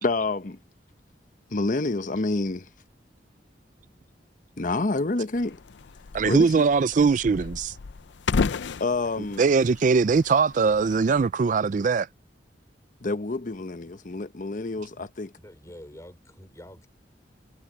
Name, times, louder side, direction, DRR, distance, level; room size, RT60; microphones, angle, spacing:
voice 1, 0.0-0.6 1.5-2.7 4.6-5.6 6.2-6.6 8.8-9.4 13.0-15.3, left 2 dB, 45° left, 0.9 m, -28 dB
sound 1, 5.3-11.3, left 4 dB, 80° left, 0.5 m, -33 dB
voice 2, 6.1-7.8 9.4-12.1, right 5 dB, 45° right, 0.4 m, -21 dB
voice 3, 15.4-16.9, left 1 dB, 20° left, 3.1 m, -46 dB
head